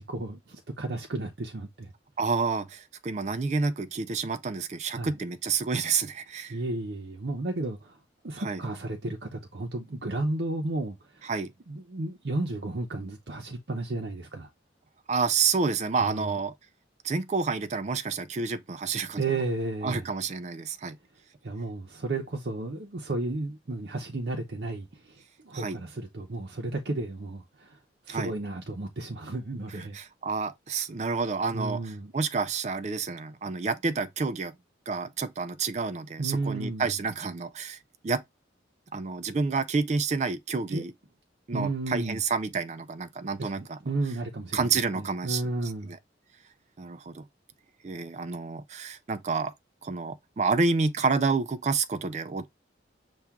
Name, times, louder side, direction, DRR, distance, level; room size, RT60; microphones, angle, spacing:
voice 1, 0.0-1.9 4.9-5.1 6.5-8.0 8.2-11.3 11.7-14.5 16.0-16.4 19.2-20.1 21.4-27.8 28.0-30.0 31.5-32.1 36.2-36.9 40.7-40.8 41.5-42.2 43.4-45.9, right 2 dB, 60° right, 0.7 m, -33 dB
voice 2, 2.2-6.6 8.4-8.6 11.2-11.5 15.1-16.5 17.0-19.2 19.8-21.0 25.5-25.8 28.1-28.3 29.8-34.5 34.9-38.2 38.9-40.9 41.5-43.8 44.5-46.0 46.8-47.2 47.8-49.5 49.8-52.5, right 4 dB, 35° right, 0.3 m, -29 dB
5.8 x 2.4 x 3.5 m
head